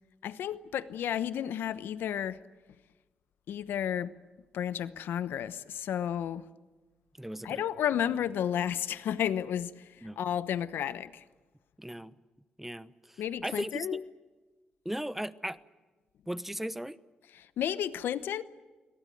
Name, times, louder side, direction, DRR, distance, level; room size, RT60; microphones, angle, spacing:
voice 1, 0.2-2.4 3.5-4.1 4.5-6.5 7.4-11.2 13.2-14.0 17.3-18.4, left 10 dB, 80° left, 1.0 m, -32 dB
voice 2, 7.2-7.6 10.0-10.2 11.8-12.1 12.6-13.9 14.8-15.6 16.3-17.0, right 1 dB, 5° right, 1.0 m, -37 dB
24.5 x 18.5 x 9.2 m
cardioid pair, 65°, 4 cm